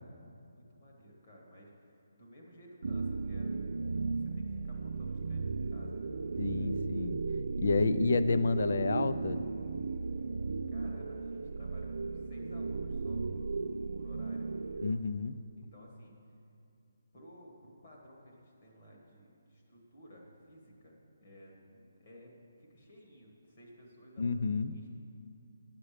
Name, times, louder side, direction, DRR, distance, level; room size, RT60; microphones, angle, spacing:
voice 1, 0.4-6.1 10.7-13.5 13.8-15.0 15.6-16.1 17.1-22.3 22.6-24.9, equal, 25° left, -2 dB, 1.4 m, -56 dB
sound 1, 2.8-14.9, right 4 dB, 55° right, 0.3 m, -35 dB
voice 2, 6.4-7.2 7.6-9.4 14.8-15.3 24.2-24.7, left 4 dB, 50° left, 13 dB, 0.3 m, -30 dB
9.6 x 7.4 x 5.0 m, 2.5 s
hypercardioid pair, 180°, 0 cm